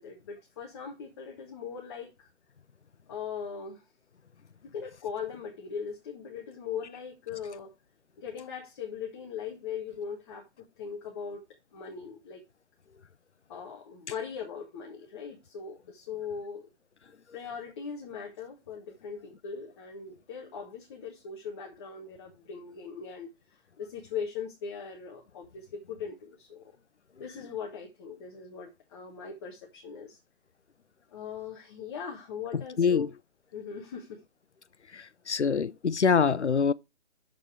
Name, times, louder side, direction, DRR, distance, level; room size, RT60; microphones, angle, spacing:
voice 1, 0.0-2.3 3.1-3.8 4.6-7.7 8.2-10.5 10.8-11.4 11.7-12.4 13.5-16.7 17.3-23.3 23.8-26.6 27.2-30.2 31.1-33.1 33.5-34.2, left 6 dB, 25° left, 1.4 m, -40 dB
voice 2, 35.3-36.7, left 6 dB, 80° left, 0.7 m, -24 dB
12.5 x 4.2 x 4.7 m
figure-of-eight pair, 145°, 34 cm